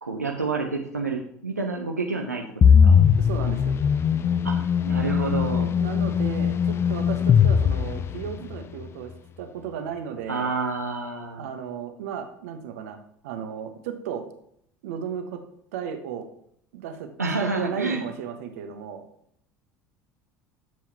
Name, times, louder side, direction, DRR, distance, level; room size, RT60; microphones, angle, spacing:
voice 1, 0.0-3.0 4.4-5.7 10.3-11.4 17.2-18.0, right 3 dB, 90° right, 1 dB, 0.8 m, -29 dB
sound 1, 2.6-8.6, left 7 dB, 30° left, 0.5 m, -20 dB
voice 2, 3.2-3.8 5.7-10.5 11.4-13.0 13.2-14.3 14.8-15.4 15.7-16.3 16.7-17.1 17.4-19.1, right 8 dB, 65° right, 7 dB, 1.2 m, -34 dB
10.5 x 7.6 x 3.0 m, 0.68 s
figure-of-eight pair, 70°, 8 cm